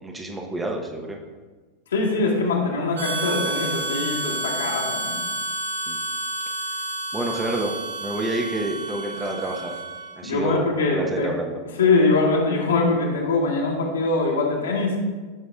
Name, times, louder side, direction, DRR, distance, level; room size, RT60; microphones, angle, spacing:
voice 1, 0.0-1.2 5.9-6.0 7.1-9.8 10.1-10.6 10.9-11.6, right 2 dB, 10° right, 1 dB, 0.9 m, -28 dB
voice 2, 1.9-5.2 10.2-11.3 11.8-15.0, left 3 dB, 70° left, -2 dB, 2.0 m, -22 dB
Harmonica, 2.9-10.2, right 1 dB, 65° right, 1.6 m, -30 dB
14.5 x 6.3 x 2.4 m, 1.3 s
figure-of-eight pair, 90°, 0 cm